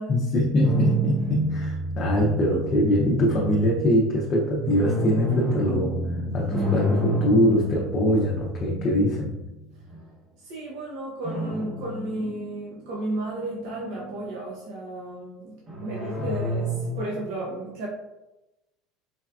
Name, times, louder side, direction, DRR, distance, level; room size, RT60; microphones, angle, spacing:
voice 1, 0.1-5.9 6.3-9.3, equal, 40° left, -3 dB, 0.5 m, -23 dB
sound 1, 0.6-10.0 11.2-12.8 13.2-14.3 15.7-17.3, right 1 dB, 35° right, 1.1 m, -29 dB
voice 2, 10.4-17.9, right 2 dB, 70° right, -4 dB, 0.7 m, -33 dB
4.1 x 2.2 x 2.3 m, 0.96 s
supercardioid pair, 95°, 0 cm